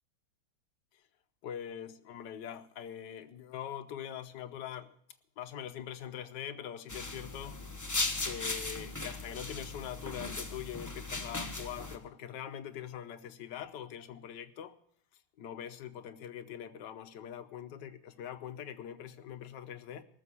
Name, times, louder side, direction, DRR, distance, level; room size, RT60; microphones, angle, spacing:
voice 1, 1.4-4.9 5.4-7.6 8.2-14.7 15.4-20.0, left 9 dB, 65° left, 1.4 m, -43 dB
sound 1, 6.9-12.0, left 2 dB, 15° left, 0.7 m, -37 dB
19.0 x 6.9 x 8.3 m
omnidirectional pair, 2.3 m